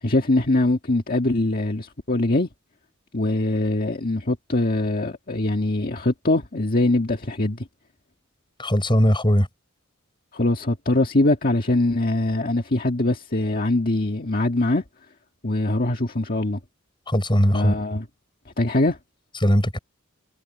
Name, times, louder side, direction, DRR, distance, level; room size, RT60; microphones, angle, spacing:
voice 1, 0.0-2.5 3.1-7.7 10.3-14.8 15.4-16.6 17.5-18.1 18.6-19.0, left 2 dB, 45° left, 1.7 m, -22 dB
voice 2, 8.6-9.5 17.1-17.7 19.4-19.8, equal, 20° left, 6.3 m, -19 dB
head